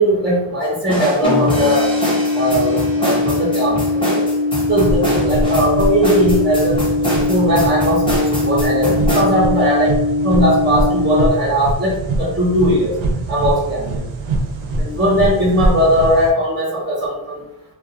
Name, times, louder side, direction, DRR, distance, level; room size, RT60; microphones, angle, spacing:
voice 1, 0.0-1.9 2.3-3.8 4.1-4.2 4.7-9.9 10.2-11.9 12.2-12.9 13.3-14.0 14.8-17.4, equal, 25° right, -7 dB, 0.6 m, -18 dB
sound 1, 0.9-9.2, equal, 10° left, 0.7 m, -23 dB
sound 2, 1.2-11.2, left 2 dB, 55° left, 0.5 m, -20 dB
sound 3, 4.7-16.3, right 2 dB, 70° right, 0.6 m, -24 dB
2.3 x 2.1 x 2.8 m, 0.86 s
wide cardioid pair, 165°, 49 cm